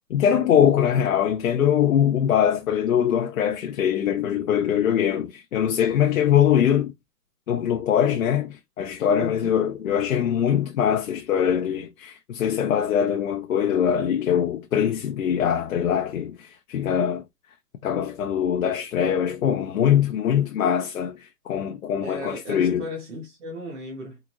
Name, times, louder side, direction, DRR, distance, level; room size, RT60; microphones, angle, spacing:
voice 1, 0.1-6.9 7.5-17.2 17.8-22.9, left 9 dB, 60° left, 0.6 m, -22 dB
voice 2, 9.2-9.5 22.0-24.2, left 1 dB, 50° right, 1.3 m, -35 dB
3.7 x 2.5 x 2.8 m
hypercardioid pair, 175°, 47 cm